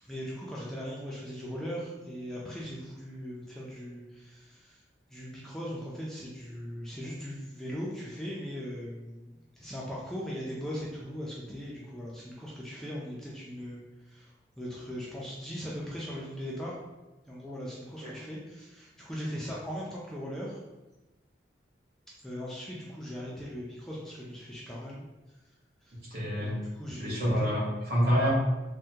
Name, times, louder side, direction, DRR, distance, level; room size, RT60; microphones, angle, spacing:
voice 1, 0.0-4.8 5.1-16.8 17.3-20.6 22.2-25.0 25.3-25.4 25.8-25.9 26.3-27.5, equal, 5° left, -6 dB, 0.4 m, -39 dB
voice 2, 26.1-26.6 26.9-28.3, equal, 55° right, -5 dB, 0.9 m, -27 dB
3.4 x 2.2 x 2.7 m, 1.1 s
head